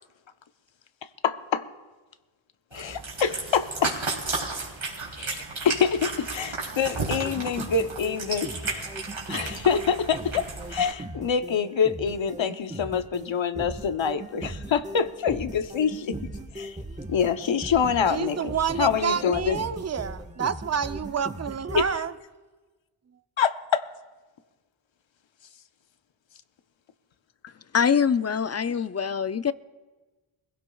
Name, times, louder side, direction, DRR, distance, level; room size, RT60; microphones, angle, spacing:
voice 1, 1.2-1.7 2.7-4.0 5.2-8.8 9.3-10.4 10.7-16.2 16.5-16.8 17.1-19.6 21.7-21.9 23.4-23.9, left 6 dB, 65° left, 10 dB, 0.8 m, -26 dB
Cat, 2.7-10.9, right 3 dB, 80° right, 3.3 m, -33 dB
sound 1, 7.1-21.8, right 1 dB, 15° right, 1.2 m, -39 dB
voice 2, 18.1-22.1, right 7 dB, 35° right, 12 dB, 0.6 m, -28 dB
voice 3, 27.7-29.5, left 7 dB, 35° left, 14 dB, 0.4 m, -24 dB
22.0 x 16.0 x 2.3 m, 1.3 s
cardioid pair, 50°, 49 cm